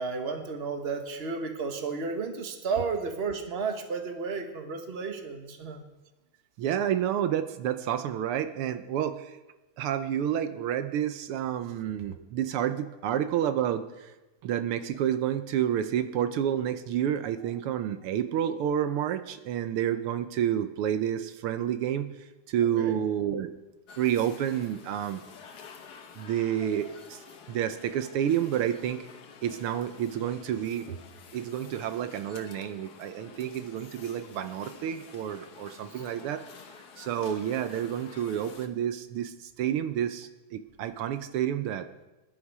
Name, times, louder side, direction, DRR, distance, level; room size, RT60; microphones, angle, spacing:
voice 1, 0.0-5.8 22.8-23.0 35.9-36.0, right 4 dB, 30° right, 5 dB, 1.4 m, -33 dB
voice 2, 6.6-9.4 9.8-14.1 14.4-22.1 22.5-23.5 24.0-25.2 26.2-27.2 27.5-29.1 29.4-31.0 31.3-36.4 37.0-41.9, right 10 dB, 80° right, 10 dB, 1.7 m, -29 dB
sound 1, 23.9-38.7, left 6 dB, 55° left, 1.5 m, -49 dB
22.5 x 11.0 x 4.8 m, 1.1 s
omnidirectional pair, 2.4 m